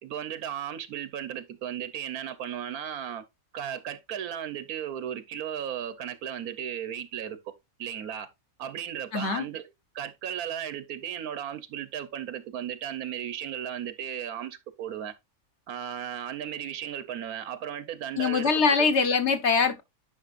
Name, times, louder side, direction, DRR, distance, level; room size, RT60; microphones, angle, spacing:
voice 1, 0.0-3.2 3.5-7.4 7.8-8.3 8.6-9.7 9.9-15.1 15.7-18.9, right 9 dB, 85° right, 1.3 m, -35 dB
voice 2, 9.1-9.5 18.1-19.8, left 5 dB, 50° left, 1.4 m, -23 dB
10.0 x 5.8 x 2.5 m
omnidirectional pair, 1.5 m